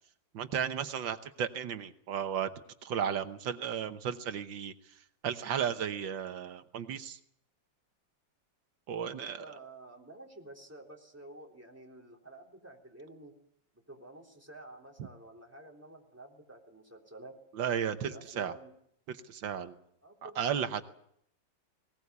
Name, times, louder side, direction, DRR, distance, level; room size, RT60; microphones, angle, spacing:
voice 1, 0.3-2.5 2.8-4.7 5.2-7.2 8.9-9.4 17.6-18.5 19.1-19.8 20.4-20.9, right 8 dB, 75° right, 9 dB, 1.7 m, -34 dB
voice 2, 9.1-13.3 13.7-17.4 18.0-18.7 20.0-20.4 20.7-20.9, right 2 dB, 5° right, 2 dB, 3.6 m, -51 dB
19.5 x 19.5 x 8.2 m, 0.70 s
omnidirectional pair, 2.1 m